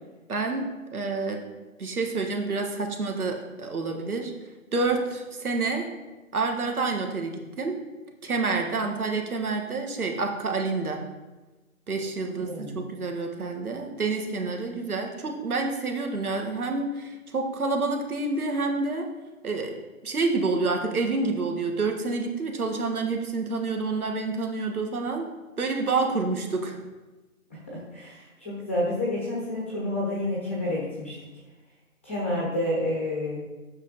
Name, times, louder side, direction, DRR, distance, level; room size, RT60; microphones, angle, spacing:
voice 1, 0.3-1.4 1.8-4.3 4.7-5.9 6.3-7.8 8.2-11.0 11.9-19.1 19.4-19.8 20.0-25.3 25.6-26.8, right 3 dB, 85° right, 3 dB, 1.8 m, -28 dB
voice 2, 12.5-12.8 27.7-31.1 32.0-33.4, left 1 dB, 10° left, -5 dB, 0.8 m, -29 dB
8.1 x 6.1 x 4.0 m, 1.1 s
hypercardioid pair, 165°, 43 cm